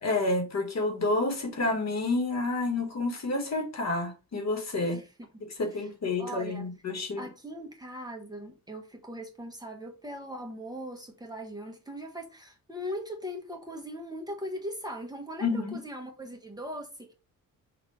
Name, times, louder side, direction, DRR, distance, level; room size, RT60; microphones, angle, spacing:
voice 1, 0.0-5.0 5.6-7.3 15.4-15.8, left 2 dB, 50° left, 1.8 m, -29 dB
voice 2, 4.8-5.1 5.7-5.9 6.2-6.7 7.2-17.1, equal, 10° right, 1.2 m, -40 dB
6.1 x 2.8 x 5.5 m
wide cardioid pair, 130°, 35 cm